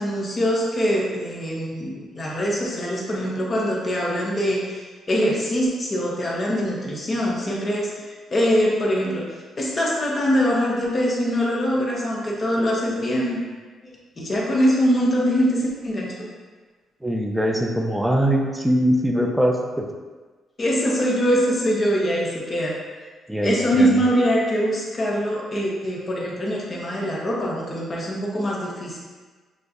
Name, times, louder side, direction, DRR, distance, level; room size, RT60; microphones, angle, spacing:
voice 1, 0.0-9.3 9.6-13.4 13.8-16.3 20.6-22.8 23.4-29.0, equal, 35° left, -3 dB, 1.0 m, -23 dB
voice 2, 17.0-19.9 23.3-24.0, equal, 5° right, 2 dB, 0.5 m, -22 dB
6.2 x 2.3 x 2.6 m, 1.3 s
cardioid pair, 90°, 0 cm